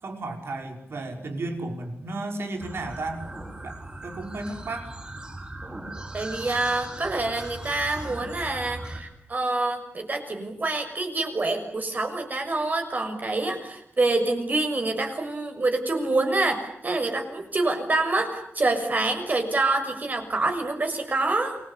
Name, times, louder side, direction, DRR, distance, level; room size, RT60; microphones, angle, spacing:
voice 1, 0.0-3.3 3.6-4.9, right 2 dB, 70° right, 4 dB, 5.7 m, -34 dB
sound 1, 2.6-9.0, right 1 dB, 20° right, 7.8 m, -39 dB
voice 2, 6.1-21.6, right 2 dB, 40° right, 6 dB, 6.2 m, -26 dB
29.0 x 22.0 x 8.4 m, 0.76 s
wide cardioid pair, 110°, 4 cm